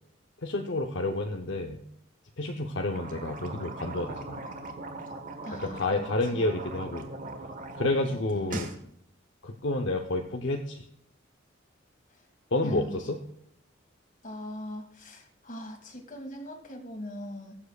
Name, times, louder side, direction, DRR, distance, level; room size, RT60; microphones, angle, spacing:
voice 1, 0.4-1.8 2.4-4.4 5.6-7.1 7.7-8.7 9.4-10.9 12.5-13.2, left 2 dB, 65° left, 3 dB, 0.8 m, -30 dB
sound 1, 2.8-7.9 8.2-8.8, right 2 dB, 40° right, 1.3 m, -39 dB
voice 2, 5.4-6.5 8.1-8.5 12.1-12.3 12.6-13.0 14.2-17.6, left 1 dB, 40° left, 4 dB, 1.9 m, -41 dB
21.0 x 7.4 x 2.4 m, 0.73 s
head